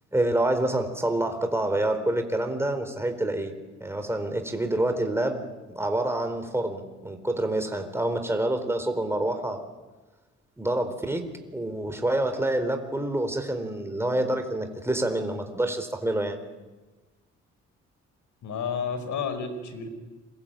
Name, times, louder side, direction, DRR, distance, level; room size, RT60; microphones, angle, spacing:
voice 1, 0.1-3.5 3.8-5.4 5.7-9.6 10.6-11.3 11.5-16.4, right 1 dB, 10° right, 6 dB, 4.3 m, -27 dB
voice 2, 18.4-19.9, left 6 dB, 70° left, 10 dB, 5.1 m, -31 dB
28.5 x 23.0 x 9.1 m, 1.2 s
cardioid pair, 90°, 30 cm